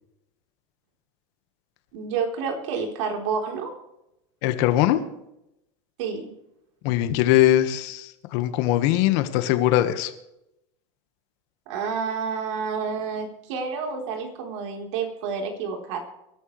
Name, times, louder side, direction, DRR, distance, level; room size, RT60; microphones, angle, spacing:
voice 1, 1.9-3.8 6.0-6.3 11.7-16.0, right 5 dB, 70° right, 2 dB, 4.1 m, -29 dB
voice 2, 4.4-5.0 6.8-10.1, left 13 dB, 60° left, 9 dB, 1.6 m, -21 dB
23.0 x 12.5 x 3.4 m, 0.85 s
supercardioid pair, 140°, 16 cm